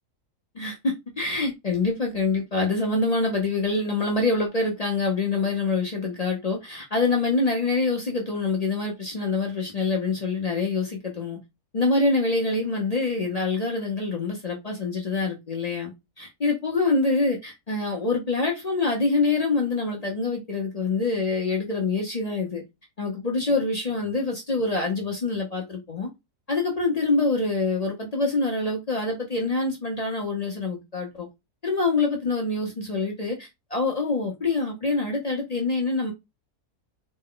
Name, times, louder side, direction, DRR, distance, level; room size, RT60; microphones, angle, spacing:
voice 1, 0.5-11.4 11.7-15.9 16.2-22.6 23.0-26.1 26.5-31.3 31.6-36.1, left 3 dB, 40° left, 0.5 m, -25 dB
4.1 x 2.1 x 3.7 m
omnidirectional pair, 1.7 m